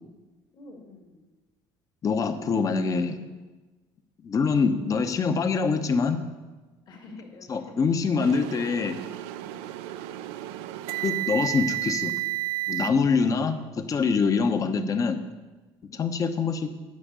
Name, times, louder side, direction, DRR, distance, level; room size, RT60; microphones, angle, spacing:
voice 1, 0.5-1.2 6.9-7.8 9.5-9.7 15.9-16.1, left 2 dB, 50° left, 1 dB, 2.1 m, -47 dB
voice 2, 2.0-3.2 4.2-6.2 7.5-9.0 11.0-12.1 12.7-15.2 15.9-16.7, left 5 dB, 35° left, 9 dB, 0.9 m, -24 dB
sound 1, 8.2-12.9, right 17 dB, 90° right, 0.4 m, -32 dB
9.7 x 5.3 x 8.2 m, 1.2 s
cardioid pair, 110°, 9 cm